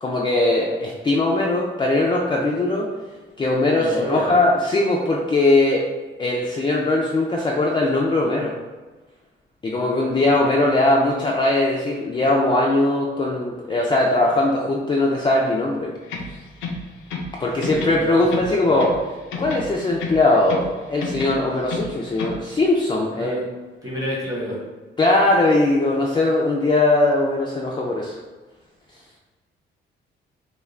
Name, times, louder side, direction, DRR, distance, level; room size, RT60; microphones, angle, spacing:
voice 1, 0.0-2.9 3.4-5.8 6.2-8.5 9.6-15.9 17.4-18.9 19.4-23.3 25.0-28.2, left 2 dB, 25° left, -3 dB, 0.3 m, -20 dB
voice 2, 3.8-4.4 10.3-10.4 17.6-18.8 23.1-23.4 23.8-24.6, equal, 15° right, -4 dB, 1.0 m, -30 dB
sound 1, 16.0-17.4 17.6-19.0 19.3-20.7 21.0-22.4, left 3 dB, 90° left, 0.5 m, -31 dB
2.4 x 2.2 x 3.2 m, 1.3 s
cardioid pair, 90°, 20 cm